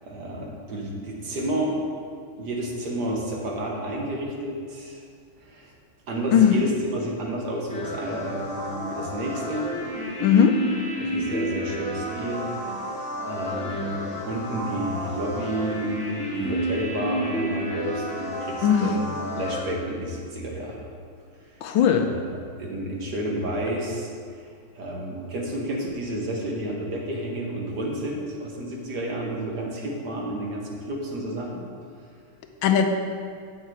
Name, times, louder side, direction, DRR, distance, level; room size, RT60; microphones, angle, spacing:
voice 1, 0.0-1.9 2.4-5.0 5.4-5.7 6.1-9.7 11.0-20.8 21.5-21.6 22.1-22.2 22.6-24.4 24.7-31.6, right 1 dB, 55° right, -1 dB, 1.7 m, -31 dB
sound 1, 7.7-19.6, equal, 5° left, 2.0 m, -31 dB
voice 2, 10.2-10.6 18.6-18.9 21.6-22.1 32.6-32.9, left 9 dB, 75° left, 5 dB, 1.3 m, -18 dB
7.9 x 5.5 x 7.7 m, 2.2 s
omnidirectional pair, 2.3 m